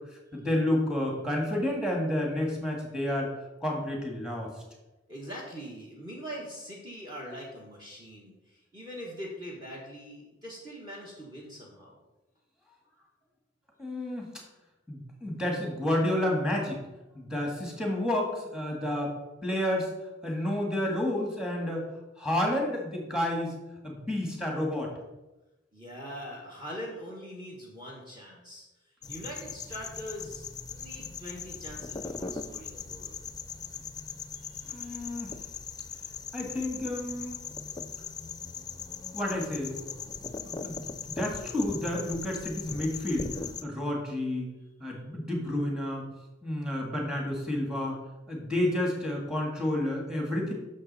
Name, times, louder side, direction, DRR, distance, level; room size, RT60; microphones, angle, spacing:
voice 1, 0.3-3.3 3.6-4.5 13.8-14.3 14.9-16.8 17.2-19.1 19.4-19.9 20.2-21.8 22.2-23.5 23.8-24.9 34.7-35.3 36.3-37.4 39.1-39.8 40.4-43.3 43.6-46.0 46.4-48.0 48.3-50.5, left 1 dB, 5° right, 0 dB, 1.9 m, -30 dB
voice 2, 5.1-12.0 25.7-28.6 29.1-33.2 34.3-35.0 44.9-45.0, equal, 25° right, -2 dB, 1.5 m, -42 dB
sound 1, 29.0-43.6, left 5 dB, 20° left, 0.5 m, -40 dB
9.7 x 6.7 x 4.2 m, 1.0 s
head